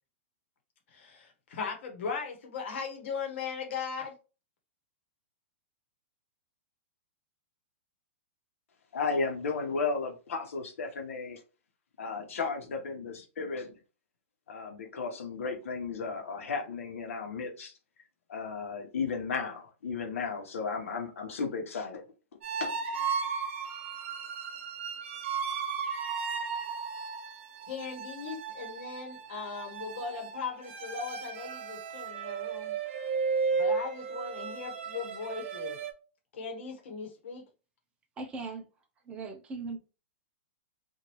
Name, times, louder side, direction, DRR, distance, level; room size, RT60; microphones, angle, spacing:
voice 1, 0.9-4.1 27.7-32.7 33.5-35.8 36.3-37.4, left 5 dB, 65° left, 1.2 m, -38 dB
voice 2, 8.9-11.4 12.0-13.8 14.5-17.8 18.3-22.0 22.6-22.7, left 4 dB, 85° left, 1.0 m, -34 dB
sound 1, 22.4-35.9, right 5 dB, 60° right, 0.6 m, -35 dB
voice 3, 38.2-38.7 39.0-39.8, right 4 dB, 15° right, 0.5 m, -38 dB
3.0 x 2.5 x 3.0 m
hypercardioid pair, 155°, 7 cm